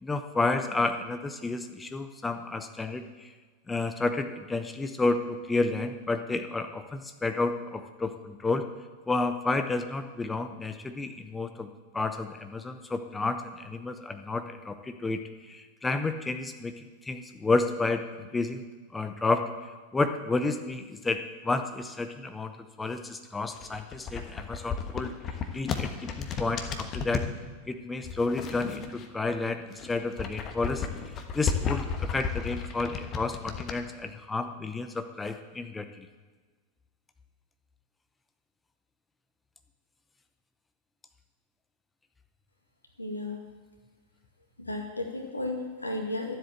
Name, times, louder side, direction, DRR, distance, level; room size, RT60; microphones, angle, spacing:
voice 1, 0.0-3.3 3.7-8.6 9.1-18.7 18.9-19.4 19.9-25.1 25.5-27.2 27.7-30.9 31.3-36.1, left 3 dB, 10° left, 8 dB, 0.8 m, -31 dB
sound 1, 23.5-27.3 28.0-29.3 29.7-33.8, left 6 dB, 30° left, 1.3 m, -33 dB
voice 2, 43.0-43.4 44.6-46.4, left 2 dB, 80° left, 2 dB, 2.2 m, -34 dB
13.0 x 7.9 x 7.7 m, 1.4 s
figure-of-eight pair, 90°, 0 cm